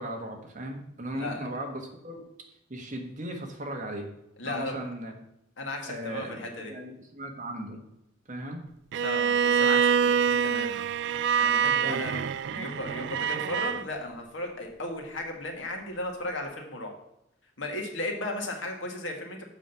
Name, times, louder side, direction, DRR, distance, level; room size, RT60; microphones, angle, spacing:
voice 1, 0.0-4.1 4.4-5.1 5.9-6.4 6.7-7.8 8.3-8.6 11.7-12.2, right 1 dB, 40° right, 3 dB, 1.4 m, -37 dB
voice 2, 1.1-1.5 4.4-4.9 5.6-6.7 9.0-10.8 11.4-16.9 17.6-19.4, left 1 dB, 75° left, 2 dB, 1.7 m, -35 dB
Bowed string instrument, 8.9-13.8, right 7 dB, 65° right, 0.3 m, -25 dB
7.5 x 5.0 x 7.0 m, 0.83 s
head